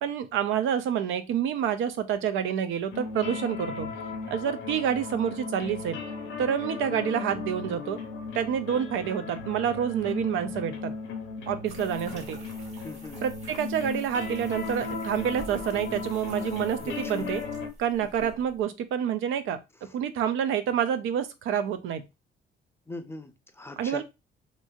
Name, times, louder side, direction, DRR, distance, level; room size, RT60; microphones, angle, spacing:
voice 1, 0.0-3.9 4.3-6.0 6.4-8.0 8.3-10.9 11.5-12.4 13.2-17.4 17.8-19.6 19.9-22.0 23.8-24.0, right 9 dB, 85° right, 0.4 m, -28 dB
sound 1, 2.9-17.7, left 4 dB, 90° left, 0.8 m, -36 dB
sound 2, 11.7-18.6, right 1 dB, 35° right, 1.3 m, -48 dB
voice 2, 12.8-13.2 16.8-17.3 18.0-18.3 19.8-20.0 22.9-24.0, left 2 dB, 10° left, 0.5 m, -41 dB
3.0 x 2.6 x 2.3 m
cardioid pair, 90°, 20 cm